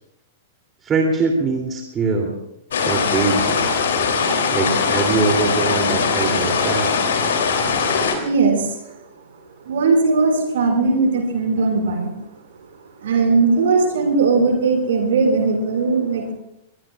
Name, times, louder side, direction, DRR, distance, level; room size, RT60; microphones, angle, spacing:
voice 1, 0.8-2.4 2.8-3.7 4.5-6.9, right 4 dB, 20° right, 0 dB, 3.2 m, -22 dB
sound 1, 2.7-8.1, left 5 dB, 60° left, 3.3 m, -20 dB
voice 2, 8.2-8.9 9.6-12.1 13.0-16.3, right 4 dB, 60° right, 3 dB, 6.0 m, -18 dB
22.5 x 22.5 x 2.5 m, 0.81 s
figure-of-eight pair, 100°, 0 cm